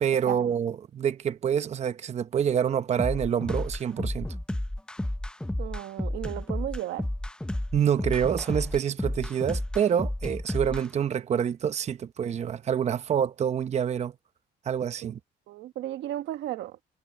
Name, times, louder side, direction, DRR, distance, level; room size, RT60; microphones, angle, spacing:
voice 1, 0.0-4.3 7.7-14.1 14.7-15.2, right 8 dB, 40° right, 0.8 m, -27 dB
sound 1, 3.0-10.8, left 1 dB, 5° left, 0.9 m, -31 dB
voice 2, 5.6-7.1 15.0-15.1 15.5-16.7, right 14 dB, 85° right, 1.3 m, -34 dB
cardioid pair, 130°, 18 cm